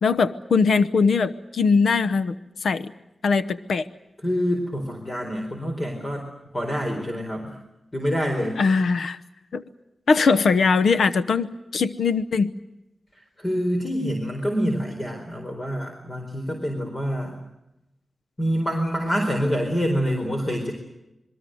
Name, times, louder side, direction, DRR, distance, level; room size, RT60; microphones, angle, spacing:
voice 1, 0.0-2.3 2.6-2.9 3.2-3.8 8.6-9.2 9.5-9.6 10.1-12.5, left 4 dB, 85° left, 13 dB, 1.0 m, -21 dB
voice 2, 4.2-6.3 6.5-7.6 7.9-8.6 13.4-17.4 18.4-20.7, equal, 25° left, 3 dB, 4.4 m, -26 dB
27.0 x 22.0 x 7.8 m, 0.89 s
wide cardioid pair, 115°, 0 cm